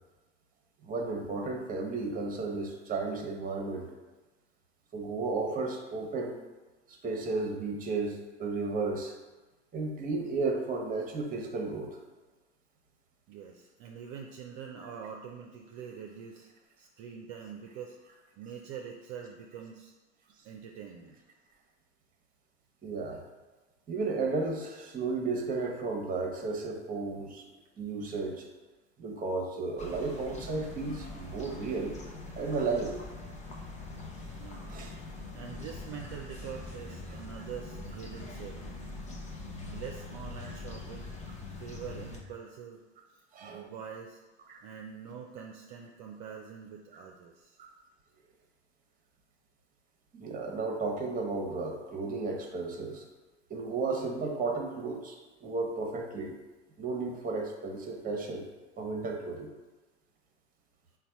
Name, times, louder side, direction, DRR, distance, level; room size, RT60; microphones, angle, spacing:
voice 1, 0.8-3.9 4.9-6.4 7.0-9.1 9.7-12.0 22.8-23.2 23.9-27.4 27.8-28.4 29.0-31.9 32.4-32.9 34.7-34.9 43.3-43.7 44.5-44.6 47.6-47.7 50.1-53.0 53.5-56.3 56.8-58.5 58.8-59.5, right 3 dB, 25° right, 2 dB, 0.9 m, -33 dB
voice 2, 13.3-16.5 16.8-18.0 18.4-19.9 20.4-21.2 34.4-34.8 35.3-38.8 39.7-41.1 41.6-42.8 43.4-44.2 44.6-47.6, right 7 dB, 50° right, 1 dB, 0.5 m, -44 dB
sound 1, 29.8-42.2, left 3 dB, 20° left, 0.7 m, -43 dB
4.1 x 2.3 x 4.5 m, 1.2 s
hypercardioid pair, 95°, 36 cm